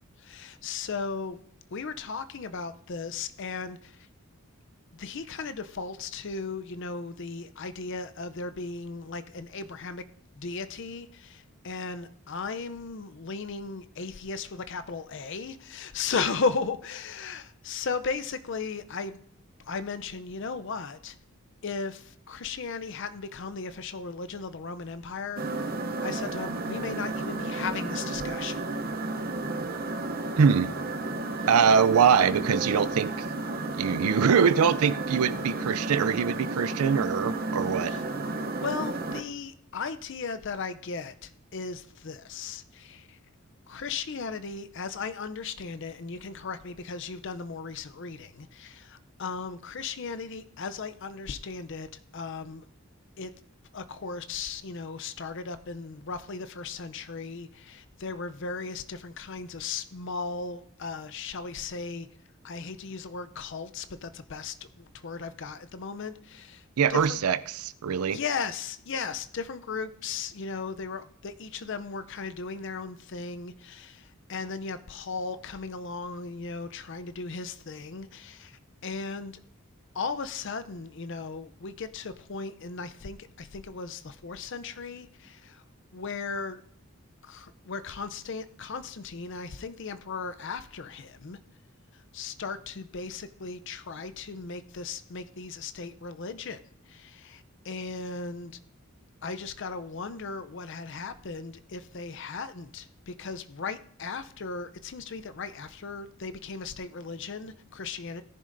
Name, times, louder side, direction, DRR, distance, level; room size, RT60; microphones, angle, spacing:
voice 1, 0.2-1.4 1.7-4.1 4.9-10.0 10.3-19.2 19.7-21.2 21.6-25.4 26.0-28.6 31.4-31.5 37.8-38.0 38.6-43.2 43.7-52.6 53.2-53.3 53.7-62.1 62.4-66.6 66.9-67.2 68.1-79.4 79.9-85.6 85.9-86.6 87.2-91.4 92.1-96.6 96.9-98.6 99.2-108.2, left 4 dB, 55° left, 0.5 m, -36 dB
sound 1, 25.4-39.2, right 2 dB, 40° right, 0.7 m, -32 dB
voice 2, 30.4-30.7 31.5-33.2 33.8-37.9 66.8-68.2, right 6 dB, 80° right, 0.4 m, -23 dB
17.5 x 10.5 x 2.6 m
head